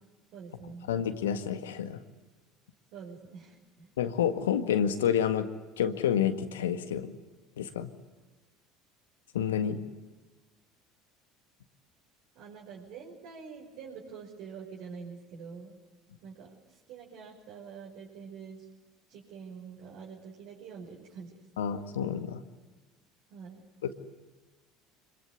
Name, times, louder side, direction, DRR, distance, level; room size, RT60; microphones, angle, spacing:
voice 1, 0.3-0.9 2.9-3.9 12.3-15.8 16.2-18.7 19.1-21.4 23.3-23.7, right 6 dB, 65° right, -4 dB, 5.8 m, -46 dB
voice 2, 0.9-2.0 4.0-5.5 5.8-7.1 7.6-7.9 9.3-9.8 21.6-22.4 23.8-23.9, left 8 dB, 85° left, 9 dB, 1.8 m, -29 dB
25.5 x 23.0 x 9.7 m, 1.3 s
hypercardioid pair, 75°, 0 cm